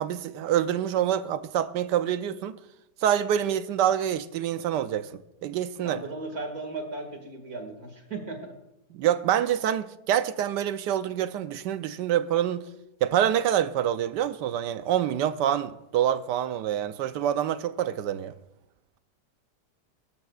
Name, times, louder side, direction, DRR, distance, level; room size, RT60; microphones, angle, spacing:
voice 1, 0.0-2.5 3.0-5.1 5.4-6.0 8.9-12.6 13.0-18.3, right 10 dB, 80° right, 1.3 m, -26 dB
voice 2, 5.8-8.5, right 3 dB, 55° right, 2.5 m, -36 dB
23.5 x 12.5 x 2.4 m
omnidirectional pair, 1.9 m